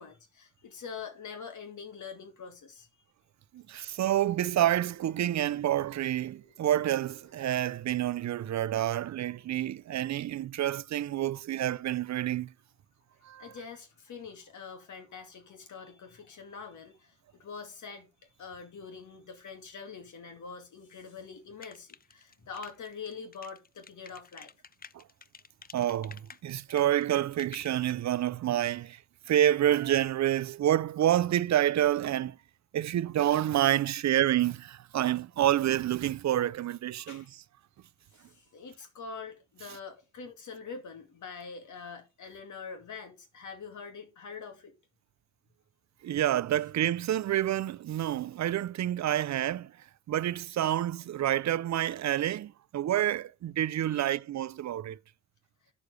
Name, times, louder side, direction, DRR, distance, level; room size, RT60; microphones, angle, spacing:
voice 1, 0.0-2.9 13.4-24.5 37.1-37.3 38.2-44.7 53.9-54.1, left 5 dB, 85° left, 2.6 m, -44 dB
sound 1, 2.9-11.7, left 2 dB, 50° left, 5.7 m, -68 dB
voice 2, 3.5-12.5 13.2-13.5 24.9-25.0 25.7-29.0 29.3-32.4 32.7-37.2 46.0-49.7 50.1-55.0, right 12 dB, 70° right, 0.5 m, -28 dB
sound 2, 21.6-27.7, left 6 dB, 30° left, 0.5 m, -51 dB
9.3 x 6.8 x 4.9 m
cardioid pair, 85°, 29 cm